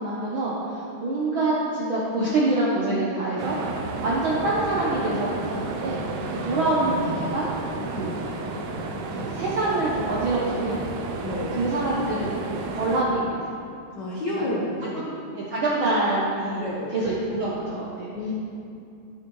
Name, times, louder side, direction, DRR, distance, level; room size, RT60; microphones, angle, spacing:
voice 1, 0.0-3.6 4.0-6.0 6.4-7.5 7.9-8.2 9.1-10.8 11.5-13.6 14.4-14.5 15.0-16.6 16.9-18.1, right 2 dB, 70° right, -6 dB, 1.2 m, -26 dB
sound 1, 3.4-13.0, right 3 dB, 90° right, 2.2 m, -32 dB
voice 2, 11.2-11.5 14.0-15.1 16.6-16.9 18.1-18.3, left 1 dB, 75° left, -5 dB, 1.0 m, -30 dB
11.5 x 7.9 x 3.2 m, 2.6 s
omnidirectional pair, 3.6 m